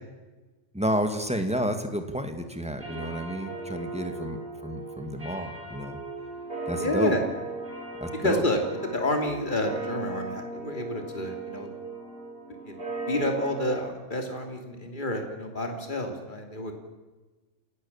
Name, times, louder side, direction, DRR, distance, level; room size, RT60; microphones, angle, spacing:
voice 1, 0.7-6.0 6.7-7.1 8.0-8.4, equal, 5° right, 7 dB, 2.1 m, -30 dB
sound 1, 2.8-13.8, right 3 dB, 50° right, 4.8 m, -37 dB
voice 2, 6.8-7.2 8.2-11.7 12.6-12.8 13.1-16.7, left 1 dB, 40° left, 4 dB, 3.2 m, -29 dB
28.5 x 17.5 x 7.3 m, 1.2 s
omnidirectional pair, 1.3 m